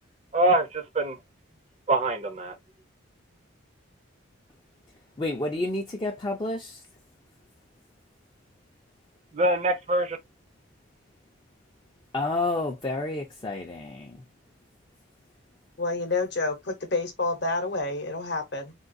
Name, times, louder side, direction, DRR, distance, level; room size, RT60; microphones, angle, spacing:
voice 1, 0.3-1.2 1.9-2.6 9.3-10.2, right 1 dB, 30° right, 0.5 m, -24 dB
voice 2, 5.2-6.8 12.1-14.2, left 2 dB, 20° left, 0.4 m, -30 dB
voice 3, 15.8-18.7, left 3 dB, 55° left, 0.8 m, -29 dB
3.6 x 2.3 x 2.5 m
head